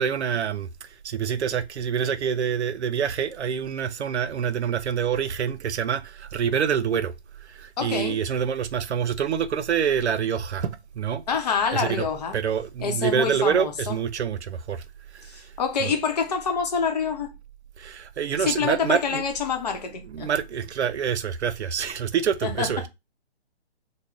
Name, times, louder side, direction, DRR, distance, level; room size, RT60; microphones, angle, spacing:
voice 1, 0.0-7.1 7.4-11.2 11.7-12.0 12.3-14.8 15.1-15.4 15.8-15.9 17.8-19.2 20.1-22.9, right 7 dB, 90° right, 0.6 m, -26 dB
voice 2, 7.8-8.2 11.3-12.4 12.8-14.0 15.3-17.3 18.4-20.3 22.4-22.9, left 6 dB, 40° left, 0.7 m, -27 dB
3.1 x 2.1 x 3.7 m
hypercardioid pair, 160°, 33 cm